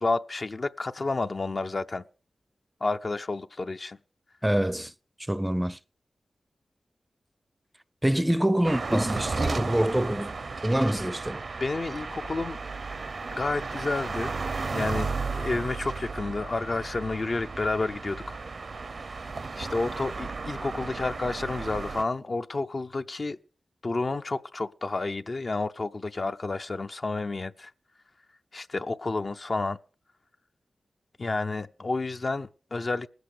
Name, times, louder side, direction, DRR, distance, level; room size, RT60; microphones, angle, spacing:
voice 1, 0.0-2.0 2.8-4.0 11.6-12.6 13.3-14.3 14.7-18.4 19.6-23.4 23.8-27.7 28.5-29.8 31.2-33.1, left 3 dB, 50° left, 0.6 m, -30 dB
voice 2, 4.4-4.9 5.3-5.8 8.0-10.3 10.6-11.4, right 1 dB, 10° right, 0.6 m, -25 dB
sound 1, 8.6-22.0, right 4 dB, 60° right, 0.8 m, -34 dB
19.5 x 8.0 x 6.6 m
cardioid pair, 60°, 0 cm